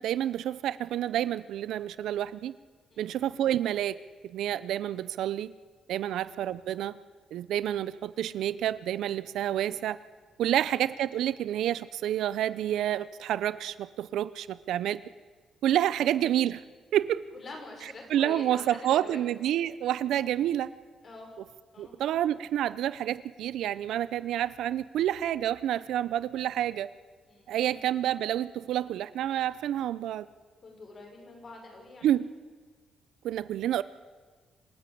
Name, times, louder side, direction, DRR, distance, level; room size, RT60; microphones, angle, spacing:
voice 1, 0.0-2.5 3.0-4.0 4.2-5.5 5.9-6.9 7.3-10.0 10.4-15.0 15.6-16.6 16.9-17.2 18.1-20.7 21.8-26.9 27.5-30.3 32.0-32.3 33.2-33.8, right 11 dB, 85° right, 17 dB, 0.7 m, -29 dB
voice 2, 17.3-19.2 21.0-21.3 21.7-22.0 27.3-27.8 30.6-32.1, left 3 dB, 40° left, 1 dB, 6.3 m, -46 dB
26.5 x 13.0 x 8.5 m, 1.4 s
cardioid pair, 125°, 0 cm